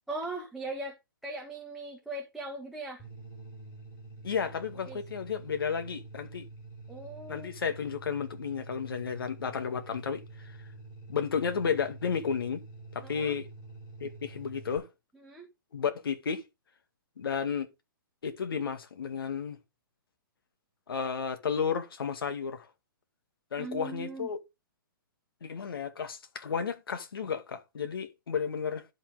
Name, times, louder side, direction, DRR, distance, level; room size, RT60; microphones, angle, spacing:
voice 1, 0.1-1.0 1.2-3.0 4.9-5.0 6.9-7.5 13.0-13.4 15.1-15.5 23.6-24.3, right 2 dB, ahead, 1.6 m, -39 dB
sound 1, 3.0-14.8, right 3 dB, 25° left, 4.8 m, -47 dB
voice 2, 4.2-6.4 7.3-10.6 11.1-12.6 12.9-13.5 14.0-14.9 15.7-16.4 17.2-17.7 18.2-19.6 20.9-22.7 23.5-24.4 25.4-28.9, left 6 dB, 85° left, 2.1 m, -32 dB
12.0 x 5.8 x 3.5 m
hypercardioid pair, 155°, 12 cm